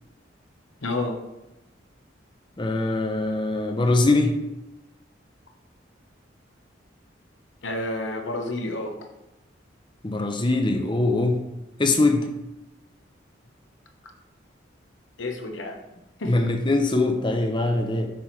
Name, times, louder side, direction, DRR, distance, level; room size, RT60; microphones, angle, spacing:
voice 1, 0.8-1.2 7.6-9.0 15.2-15.8 16.2-16.3, left 2 dB, 85° left, 3 dB, 1.1 m, -29 dB
voice 2, 2.6-4.3 10.0-11.4 11.8-12.3 16.3-18.1, left 2 dB, 25° left, 5 dB, 0.7 m, -22 dB
7.1 x 6.0 x 3.2 m, 0.94 s
head